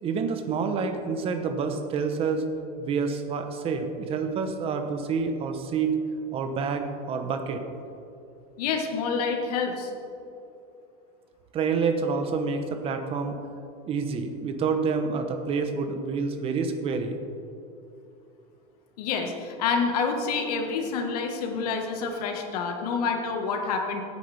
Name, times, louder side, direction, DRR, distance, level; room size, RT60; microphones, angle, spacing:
voice 1, 0.0-2.4 2.8-6.0 6.3-7.6 11.5-13.4 13.9-17.2, right 5 dB, 30° right, 6 dB, 1.0 m, -28 dB
voice 2, 8.6-9.9 19.0-24.0, left 5 dB, 80° left, 3 dB, 1.6 m, -28 dB
16.0 x 9.4 x 3.5 m, 2.7 s
supercardioid pair, 155°, 20 cm